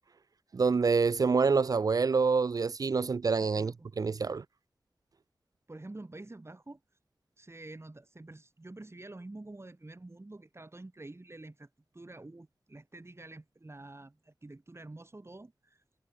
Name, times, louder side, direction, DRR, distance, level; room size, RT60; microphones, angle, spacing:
voice 1, 0.5-4.4, right 4 dB, 55° right, 0.3 m, -27 dB
voice 2, 3.4-3.9 5.7-6.8 7.4-15.8, right 2 dB, 35° right, 7.7 m, -48 dB
wide cardioid pair, 55°, 7 cm